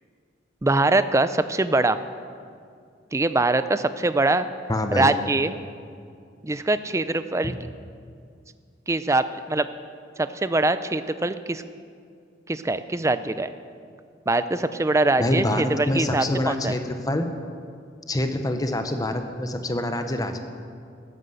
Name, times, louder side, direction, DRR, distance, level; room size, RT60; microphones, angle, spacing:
voice 1, 0.6-2.0 3.1-4.5 4.9-5.5 6.4-7.6 8.9-9.7 10.2-11.6 12.5-13.5 14.3-16.8, right 2 dB, 15° right, 12 dB, 0.5 m, -23 dB
voice 2, 4.7-5.1 7.4-7.5 15.2-17.3 18.1-20.4, left 1 dB, 20° left, 6 dB, 0.9 m, -26 dB
13.5 x 9.7 x 7.8 m, 2.3 s
head